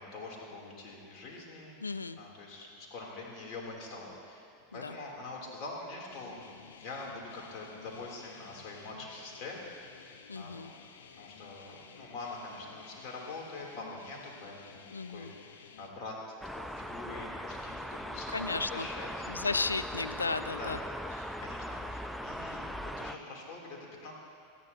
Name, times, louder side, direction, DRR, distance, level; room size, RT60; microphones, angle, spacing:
voice 1, 0.0-4.4 4.7-6.4 6.8-9.6 10.0-10.6 11.2-16.2 16.5-19.3 20.5-20.7 21.1-24.1, left 3 dB, 45° left, -2 dB, 3.3 m, -44 dB
voice 2, 1.8-2.2 4.7-5.0 10.3-10.7 14.9-15.3 18.3-18.9 19.3-20.8, left 3 dB, 90° left, 12 dB, 0.4 m, -34 dB
sound 1, 6.1-15.9, left 6 dB, 70° left, 0.9 m, -53 dB
sound 2, 16.4-23.2, equal, ahead, 0.5 m, -40 dB
18.5 x 14.0 x 3.0 m, 2.4 s
figure-of-eight pair, 90°, 0 cm